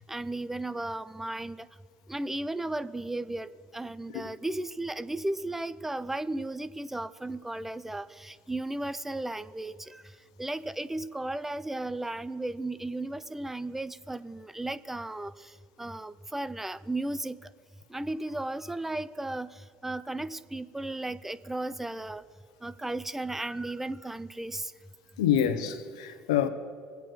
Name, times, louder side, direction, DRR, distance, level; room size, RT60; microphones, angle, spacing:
voice 1, 0.0-1.7 2.1-10.0 10.4-17.4 17.9-22.2 22.6-24.7, right 2 dB, 10° right, 0.6 m, -35 dB
voice 2, 25.2-26.5, left 9 dB, 85° left, 1.1 m, -26 dB
22.5 x 8.3 x 4.9 m
hypercardioid pair, 75°, 3 cm